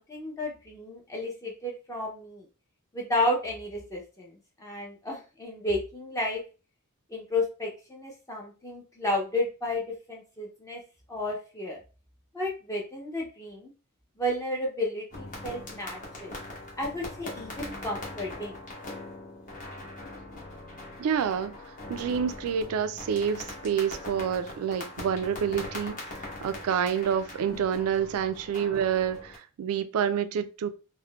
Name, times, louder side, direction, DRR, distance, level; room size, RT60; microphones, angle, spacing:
voice 1, 0.0-2.4 2.9-6.4 7.1-10.8 11.1-11.8 12.3-13.7 14.2-16.3 16.8-18.6 27.5-27.6, left 1 dB, 15° left, 0.5 m, -32 dB
sound 1, 15.1-29.4, left 2 dB, 35° left, 1.0 m, -41 dB
voice 2, 21.0-21.6 21.9-30.7, right 8 dB, 70° right, 0.3 m, -28 dB
3.6 x 2.1 x 2.2 m
head